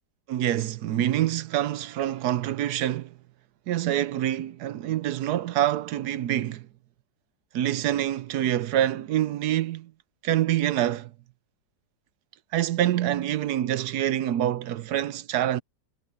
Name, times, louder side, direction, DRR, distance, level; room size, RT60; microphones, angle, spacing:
voice 1, 0.3-3.2 3.7-6.7 7.5-9.9 10.2-11.1 12.5-15.6, right 12 dB, 70° right, 1.2 m, -26 dB
omnidirectional pair, 1.9 m